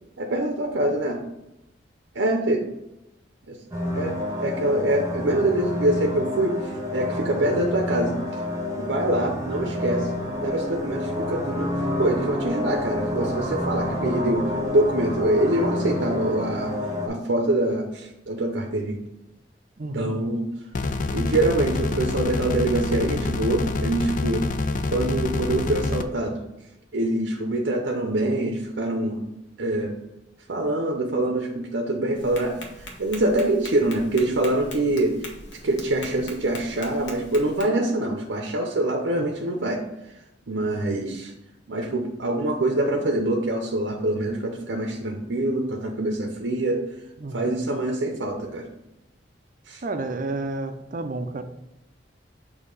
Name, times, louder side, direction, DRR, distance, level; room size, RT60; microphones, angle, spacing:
voice 1, 0.2-1.2 2.1-2.7 3.5-3.6 3.9-8.4 8.8-10.1 10.4-11.7 12.0-16.8 17.0-19.0 19.9-20.5 21.1-24.5 24.9-26.4 26.9-29.2 29.6-29.9 30.5-35.2 35.6-39.8 40.5-41.3 41.7-46.8 47.3-48.7 49.7-49.8, right 1 dB, 80° right, 2 dB, 0.7 m, -25 dB
sound 1, 3.7-17.1, left 1 dB, 15° right, 1.1 m, -29 dB
voice 2, 19.8-20.2 39.2-39.3 47.2-47.6 49.8-51.4, right 2 dB, 45° right, 8 dB, 0.5 m, -31 dB
sound 2, 20.7-26.0, left 3 dB, 45° left, 0.4 m, -26 dB
Tap, 32.1-37.6, left 1 dB, 75° left, 1.2 m, -41 dB
6.6 x 2.8 x 5.3 m, 0.91 s
head